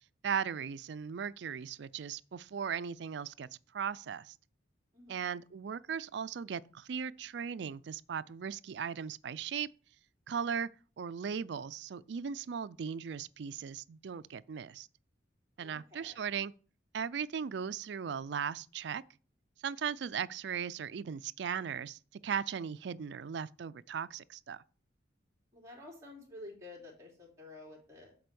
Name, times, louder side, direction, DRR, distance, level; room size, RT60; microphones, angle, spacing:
voice 1, 0.2-4.3 5.1-9.7 10.3-10.7 11.0-14.9 15.6-16.5 16.9-19.0 19.6-24.6, right 7 dB, 65° right, 0.4 m, -38 dB
voice 2, 15.6-16.3 25.5-28.1, left 2 dB, 15° right, 3.2 m, -51 dB
7.7 x 4.5 x 6.9 m
head